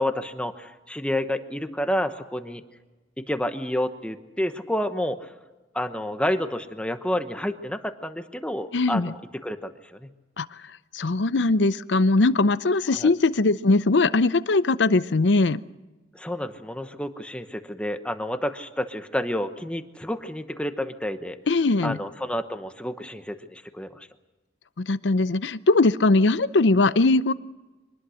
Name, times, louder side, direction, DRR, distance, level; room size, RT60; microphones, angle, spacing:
voice 1, 0.0-2.6 3.2-5.3 5.7-10.1 12.9-13.1 16.1-21.4 21.8-24.1, left 1 dB, 5° left, 8 dB, 1.0 m, -29 dB
voice 2, 8.7-9.1 10.4-10.5 10.9-15.6 21.5-22.0 24.8-27.3, left 3 dB, 85° left, 15 dB, 0.7 m, -20 dB
24.5 x 20.0 x 6.4 m, 1.2 s
head